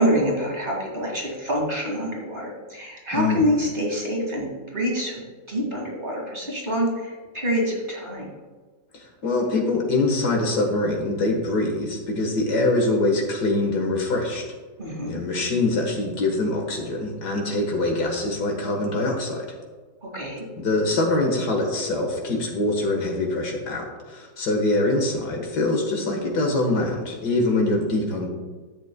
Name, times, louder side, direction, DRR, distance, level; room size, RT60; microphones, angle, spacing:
voice 1, 0.0-5.2 5.5-8.3 14.8-15.2 20.0-20.4, equal, 30° right, -3 dB, 2.3 m, -26 dB
voice 2, 3.1-3.5 8.9-14.4 15.1-19.5 20.6-28.3, left 2 dB, 70° left, 1 dB, 2.0 m, -24 dB
12.0 x 7.9 x 2.3 m, 1.4 s
omnidirectional pair, 1.9 m